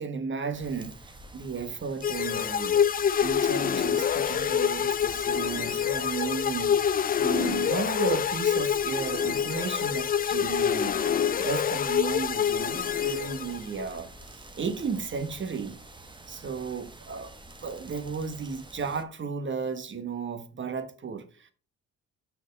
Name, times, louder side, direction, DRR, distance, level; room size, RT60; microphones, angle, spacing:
voice 1, 0.0-2.8 3.2-11.0 11.4-15.8 16.3-17.3 17.6-21.5, right 5 dB, 40° right, 1.2 m, -34 dB
sound 1, 0.5-19.0, right 2 dB, 15° right, 1.0 m, -49 dB
sound 2, 2.0-13.9, left 8 dB, 30° left, 0.4 m, -26 dB
6.2 x 4.6 x 5.3 m
cardioid pair, 90°, 30 cm